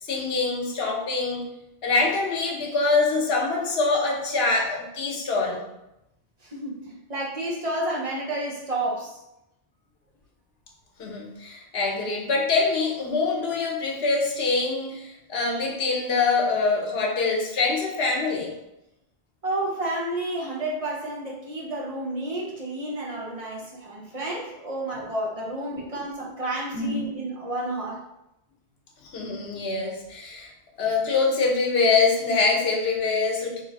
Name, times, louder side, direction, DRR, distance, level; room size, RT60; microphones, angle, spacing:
voice 1, 0.0-1.4 1.8-5.6 11.0-18.5 26.7-27.1 29.0-30.5 30.8-33.6, left 4 dB, 70° left, 0 dB, 1.0 m, -24 dB
voice 2, 6.4-9.2 19.4-28.0, right 1 dB, 40° right, -3 dB, 0.7 m, -31 dB
3.1 x 2.5 x 4.0 m, 0.87 s
omnidirectional pair, 1.1 m